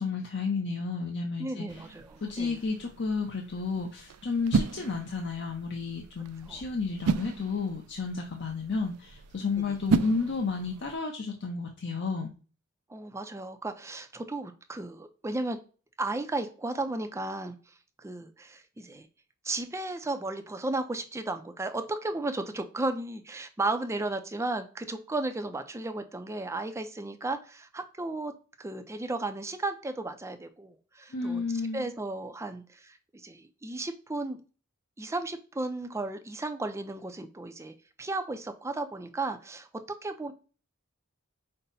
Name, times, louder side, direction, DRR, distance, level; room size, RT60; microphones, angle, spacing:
voice 1, 0.0-1.8 2.2-12.3 31.1-31.9, left 4 dB, 50° left, 2 dB, 0.6 m, -32 dB
voice 2, 1.4-2.6 6.5-6.6 9.6-9.8 12.9-15.6 16.0-17.6 18.0-19.1 19.4-28.3 28.6-31.4 31.7-34.4 35.0-39.7 40.0-40.3, right 2 dB, 15° right, 7 dB, 0.4 m, -34 dB
sound 1, 1.7-10.9, right 4 dB, 85° right, 0.4 m, -34 dB
5.4 x 2.0 x 4.0 m, 0.36 s
head